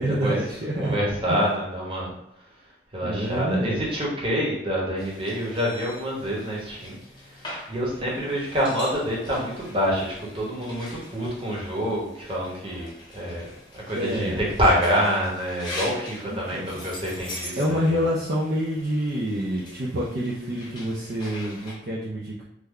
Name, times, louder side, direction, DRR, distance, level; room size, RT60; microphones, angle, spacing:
voice 1, 0.0-1.0 1.3-1.5 3.0-3.9 13.9-14.4 16.2-16.8 17.6-22.4, equal, 50° right, -6 dB, 0.5 m, -27 dB
voice 2, 0.8-2.1 2.9-7.0 7.3-13.5 13.7-14.3 14.6-17.8, equal, 30° right, -4 dB, 0.9 m, -27 dB
sound 1, 5.0-21.7, left 1 dB, 25° left, 0.9 m, -42 dB
3.2 x 2.2 x 3.6 m, 0.80 s
head